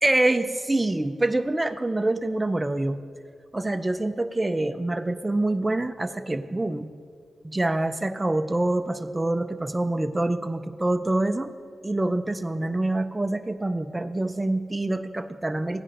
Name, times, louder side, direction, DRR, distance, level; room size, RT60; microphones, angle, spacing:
voice 1, 0.0-3.0 3.5-6.9 7.4-11.5 11.8-15.8, right 2 dB, 20° right, 9 dB, 0.5 m, -26 dB
15.5 x 9.8 x 3.0 m, 2.2 s
cardioid pair, 50°, 0 cm